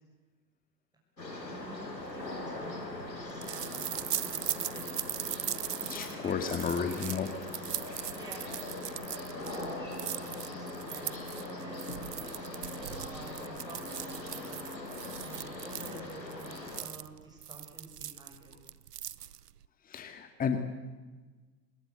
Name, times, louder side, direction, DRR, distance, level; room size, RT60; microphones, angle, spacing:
sound 1, 1.2-16.8, left 2 dB, 85° left, 6.2 m, -41 dB
voice 1, 1.3-2.9 3.2-5.3 5.9-7.3 8.0-14.6 15.2-18.5, right 2 dB, 10° right, -1 dB, 6.6 m, -51 dB
sound 2, 2.2-19.7, right 10 dB, 70° right, 0.9 m, -40 dB
voice 2, 5.8-7.3 19.9-20.6, left 6 dB, 15° left, 7 dB, 2.0 m, -32 dB
27.0 x 20.5 x 8.3 m, 1.3 s
figure-of-eight pair, 95°, 49 cm